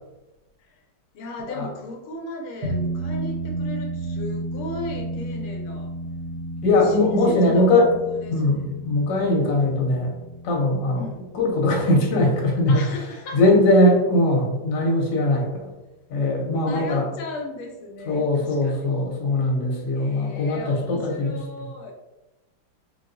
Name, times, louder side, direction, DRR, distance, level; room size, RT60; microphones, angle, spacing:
voice 1, 1.1-5.9 6.8-7.8 8.0-8.7 10.9-11.3 12.7-13.5 16.6-18.9 20.0-21.9, left 1 dB, 90° left, 1 dB, 1.5 m, -36 dB
sound 1, 2.6-13.3, right 1 dB, 70° right, 0.7 m, -32 dB
voice 2, 6.6-7.9 8.3-10.1 10.4-11.0 11.3-12.8 13.3-15.7 16.1-17.1 18.1-21.4, left 1 dB, 65° left, -1 dB, 1.4 m, -20 dB
4.2 x 2.3 x 2.5 m, 1.0 s
omnidirectional pair, 2.3 m